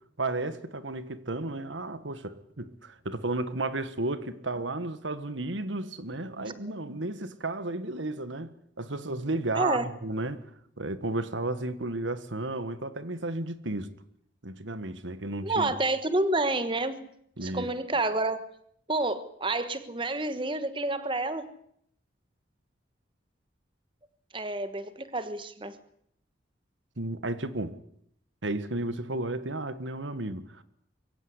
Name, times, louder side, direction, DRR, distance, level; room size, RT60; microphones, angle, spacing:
voice 1, 0.2-8.5 8.8-10.5 10.8-13.9 14.4-15.7 17.4-17.7 27.0-27.8 28.4-30.6, right 2 dB, 85° right, 1.6 m, -33 dB
voice 2, 15.4-17.0 17.4-18.4 18.9-21.5 24.3-25.8, right 2 dB, 25° right, 1.2 m, -29 dB
22.5 x 17.0 x 9.8 m
head